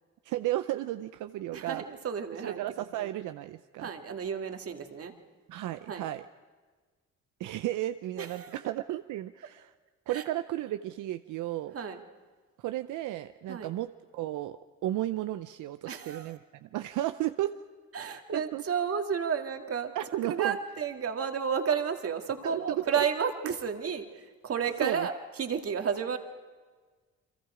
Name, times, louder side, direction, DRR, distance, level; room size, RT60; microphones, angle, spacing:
voice 1, 0.2-1.8 2.4-3.9 5.5-6.2 7.4-9.7 10.1-11.7 12.6-17.5 18.3-18.6 19.9-20.6 22.4-23.0 24.8-25.1, right 14 dB, 85° right, 10 dB, 0.6 m, -34 dB
voice 2, 1.5-2.7 3.0-3.1 3.8-5.1 5.9-6.1 8.2-8.6 10.1-10.2 11.7-12.0 13.5-13.7 15.9-16.3 17.9-19.9 20.3-25.1 25.4-26.2, right 7 dB, 50° right, 5 dB, 2.1 m, -32 dB
29.5 x 23.5 x 5.0 m, 1.4 s
cardioid pair, 90°, 30 cm